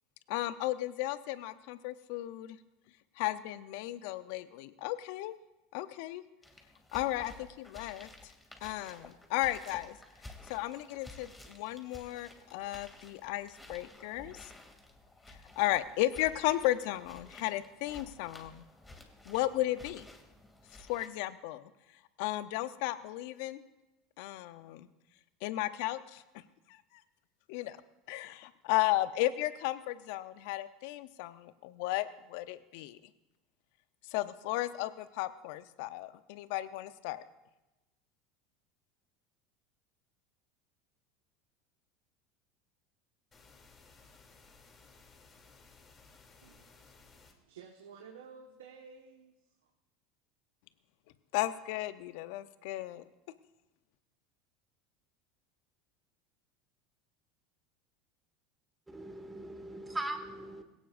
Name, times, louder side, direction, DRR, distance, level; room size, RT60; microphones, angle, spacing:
voice 1, 0.3-2.6 3.2-5.4 5.7-6.2 6.9-7.3 7.6-8.1 8.6-10.0 10.5-14.4 15.3-18.6 19.2-20.1 20.8-21.7 22.2-23.6 24.2-24.9 25.4-26.2 27.5-27.8 28.1-33.0 34.1-37.2 51.3-53.0, left 16 dB, 65° left, 13 dB, 0.8 m, -34 dB
sound 1, 6.4-21.1, left 2 dB, 10° left, 2.8 m, -53 dB
sound 2, 43.3-47.3, left 4 dB, 30° left, 3.1 m, -59 dB
voice 2, 46.4-49.7, right 6 dB, 80° right, 1 dB, 1.5 m, -54 dB
voice 3, 58.9-60.6, right 1 dB, 10° right, 5 dB, 2.3 m, -40 dB
21.0 x 17.5 x 2.6 m, 1.0 s
hypercardioid pair, 80°, 0 cm